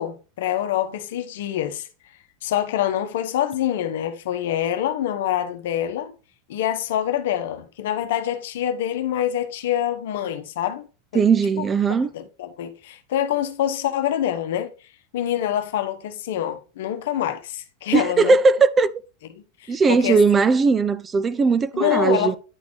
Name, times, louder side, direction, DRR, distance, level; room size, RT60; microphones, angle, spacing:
voice 1, 0.0-1.9 2.4-6.1 6.5-10.9 11.1-11.2 11.6-11.7 12.1-14.7 15.1-18.4 19.6-20.2 21.7-22.4, left 11 dB, 70° left, 0.9 m, -25 dB
voice 2, 11.1-12.1 17.9-18.9 19.7-22.4, right 4 dB, 25° right, 0.5 m, -18 dB
9.8 x 4.1 x 3.1 m
hypercardioid pair, 100°, 0 cm